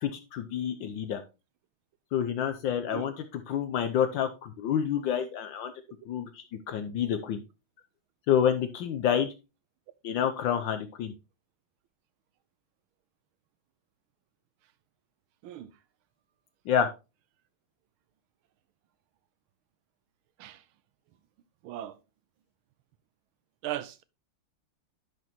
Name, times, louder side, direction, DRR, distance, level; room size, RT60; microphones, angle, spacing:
voice 1, 0.0-1.2 2.1-5.7 6.0-7.4 8.3-9.3 10.0-11.1 16.7-16.9, left 8 dB, 70° left, 1.3 m, -28 dB
voice 2, 21.6-22.0 23.6-24.0, right 13 dB, 80° right, 1.5 m, -37 dB
10.5 x 6.0 x 3.0 m
omnidirectional pair, 2.3 m